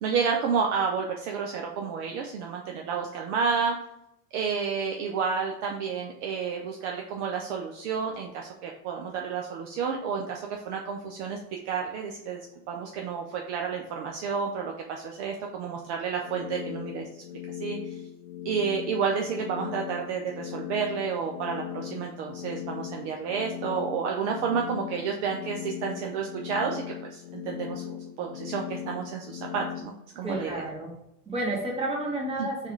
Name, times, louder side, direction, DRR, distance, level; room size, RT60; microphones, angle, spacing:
voice 1, 0.0-3.8 4.3-12.4 12.7-17.1 17.6-18.0 18.4-30.6 32.4-32.5, right 6 dB, 50° right, 1 dB, 0.5 m, -30 dB
sound 1, 16.1-29.8, left 10 dB, 75° left, 0.7 m, -38 dB
voice 2, 30.2-30.9 31.3-32.7, right 1 dB, 10° right, -2 dB, 1.1 m, -31 dB
3.5 x 2.4 x 4.5 m, 0.84 s
figure-of-eight pair, 85°, 47 cm